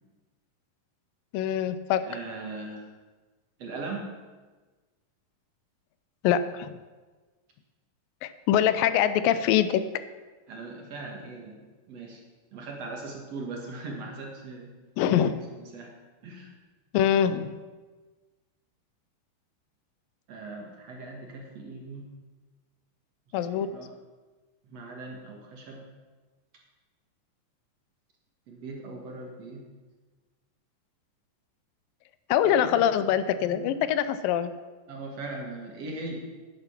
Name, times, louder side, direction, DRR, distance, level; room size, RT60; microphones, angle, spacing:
voice 1, 1.3-2.0 6.2-6.8 8.2-9.8 15.0-15.5 16.9-17.6 23.3-23.7 32.3-34.5, left 10 dB, 85° left, 13 dB, 2.3 m, -24 dB
voice 2, 2.0-2.9 3.6-4.1 10.5-11.6 11.9-12.2 12.5-14.7 15.2-15.9 16.2-16.5 20.3-22.1 23.4-23.9 24.6-25.9 28.5-29.7 32.4-33.0 33.4-33.8 34.9-36.3, right 2 dB, 55° right, 0 dB, 2.4 m, -39 dB
10.0 x 9.7 x 5.8 m, 1.3 s
omnidirectional pair, 4.0 m